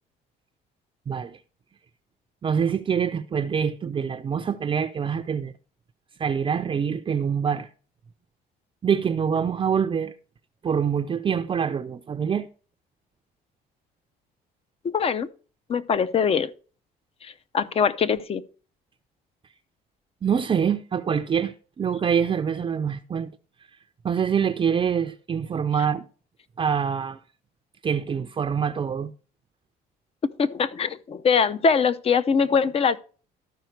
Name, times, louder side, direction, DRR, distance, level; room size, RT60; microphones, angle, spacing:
voice 1, 1.1-1.4 2.4-5.5 6.2-7.7 8.8-10.1 10.6-12.5 20.2-23.3 24.0-26.0 26.6-27.2 27.8-29.1, right 7 dB, 30° right, 0.5 m, -25 dB
voice 2, 14.8-15.3 15.7-16.5 17.2-18.4 30.4-33.0, left 6 dB, 35° left, 0.6 m, -22 dB
13.0 x 5.0 x 4.5 m
cardioid pair, 110°, 17 cm